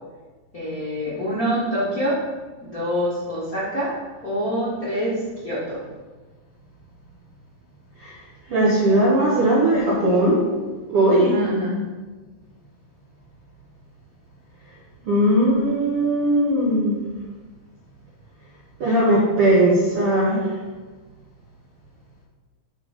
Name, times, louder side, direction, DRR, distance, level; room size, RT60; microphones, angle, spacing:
voice 1, 0.5-2.2 2.6-3.9 4.2-5.1 5.4-5.8 11.1-11.7, equal, 40° left, -11 dB, 1.3 m, -25 dB
voice 2, 8.5-10.5 10.9-11.3 15.1-17.0 18.8-20.4, right 1 dB, 65° right, -6 dB, 1.4 m, -18 dB
6.8 x 3.9 x 5.0 m, 1.3 s
omnidirectional pair, 3.9 m